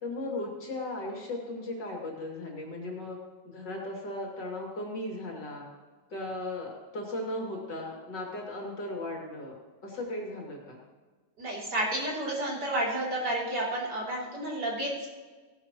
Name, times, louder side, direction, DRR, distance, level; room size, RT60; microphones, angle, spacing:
voice 1, 0.0-3.2 3.4-5.7 6.1-9.6 9.8-10.8, left 1 dB, 60° left, -1 dB, 3.2 m, -36 dB
voice 2, 11.4-15.1, right 1 dB, 55° right, -4 dB, 3.9 m, -31 dB
17.0 x 11.0 x 3.0 m, 1.4 s
omnidirectional pair, 2.2 m